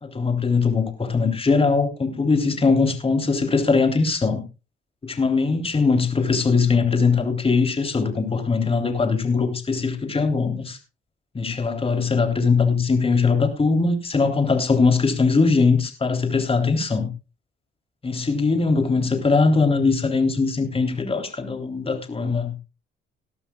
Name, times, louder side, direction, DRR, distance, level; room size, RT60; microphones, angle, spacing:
voice 1, 0.0-4.4 5.0-10.8 11.3-17.1 18.0-22.6, left 4 dB, 30° left, 3.5 m, -21 dB
19.0 x 12.0 x 2.4 m
cardioid pair, 90°, 20 cm